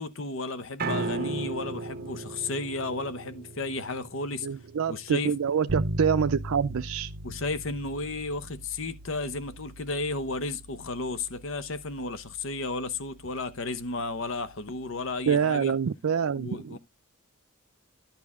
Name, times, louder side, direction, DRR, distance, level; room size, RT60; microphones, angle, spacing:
voice 1, 0.0-4.5 4.9-5.3 7.2-15.7 16.4-16.8, left 3 dB, 65° left, 0.9 m, -33 dB
Piano, 0.8-7.0, right 3 dB, 45° right, 1.1 m, -37 dB
voice 2, 4.4-7.1 15.3-16.8, right 7 dB, 85° right, 0.4 m, -26 dB
Bass guitar, 5.7-15.4, right 1 dB, 70° right, 1.0 m, -40 dB
11.0 x 5.7 x 3.5 m
head